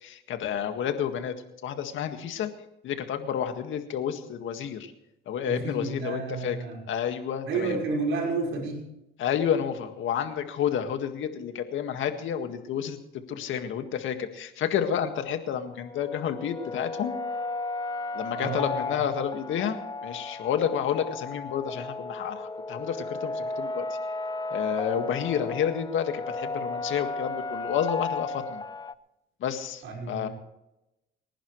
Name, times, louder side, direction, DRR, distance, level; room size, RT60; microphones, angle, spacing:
voice 1, 0.0-1.3 1.6-2.5 2.8-4.9 5.3-6.6 6.9-7.8 9.2-13.0 13.3-17.1 18.1-19.8 20.0-23.8 24.5-28.6 29.4-30.3, left 8 dB, 80° left, 7 dB, 1.9 m, -30 dB
voice 2, 5.5-6.8 7.4-8.9 18.3-18.7 29.8-30.3, right 3 dB, 90° right, -1 dB, 5.7 m, -30 dB
sound 1, 15.6-28.9, left 3 dB, 20° left, 0.6 m, -34 dB
29.5 x 11.5 x 3.2 m, 0.90 s
cardioid pair, 90°, 20 cm